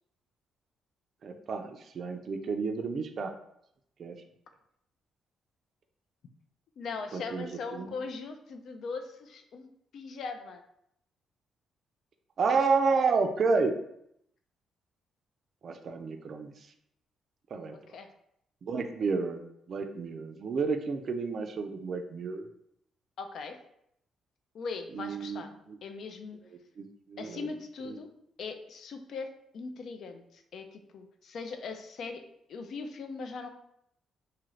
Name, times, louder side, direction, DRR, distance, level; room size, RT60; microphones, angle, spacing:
voice 1, 1.2-3.3 4.0-4.2 7.1-7.9 12.4-13.7 15.6-16.5 17.5-17.8 18.6-22.5 24.9-25.4 25.7-25.8 26.8-27.5 27.8-28.0, right 4 dB, 55° right, 6 dB, 0.4 m, -30 dB
voice 2, 6.8-9.7 9.9-10.6 17.7-18.1 23.2-23.6 24.5-25.5 25.8-26.4 27.2-28.1 28.4-29.3 29.5-32.2 32.5-33.5, left 4 dB, 65° left, 6 dB, 0.4 m, -40 dB
2.7 x 2.5 x 3.1 m, 0.75 s
cardioid pair, 90°, 0 cm